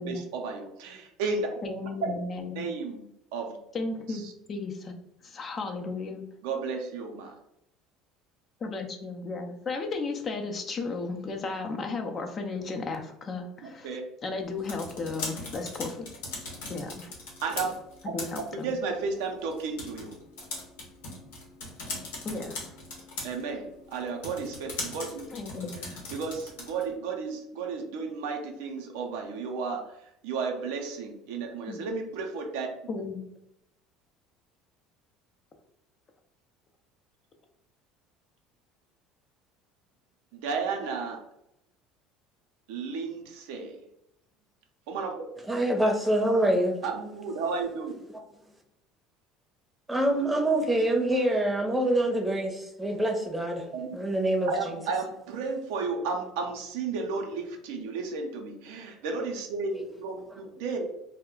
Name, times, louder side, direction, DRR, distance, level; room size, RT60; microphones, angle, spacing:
voice 1, 0.0-1.5 2.0-2.1 2.6-3.0 3.3-3.6 6.4-7.3 13.6-14.0 17.4-17.8 18.6-20.1 23.2-23.7 23.9-25.2 26.1-29.8 30.2-32.7 40.3-41.2 42.7-43.8 44.9-45.1 46.8-48.0 53.7-53.9 54.5-60.8, right 4 dB, 80° right, 3 dB, 0.5 m, -33 dB
voice 2, 1.6-2.7 3.7-4.2 4.5-4.9 5.2-6.2 8.6-16.1 16.7-17.1 18.0-18.7 22.2-22.6 25.3-25.9 31.7-31.8 32.9-33.2, left 3 dB, 40° left, 4 dB, 0.5 m, -34 dB
sound 1, 14.4-26.9, left 2 dB, 85° left, 0.8 m, -41 dB
voice 3, 45.5-46.8 49.9-54.8 59.7-59.8, right 1 dB, 10° right, 1 dB, 0.7 m, -26 dB
2.2 x 2.1 x 3.6 m, 0.78 s
hypercardioid pair, 80°, 0 cm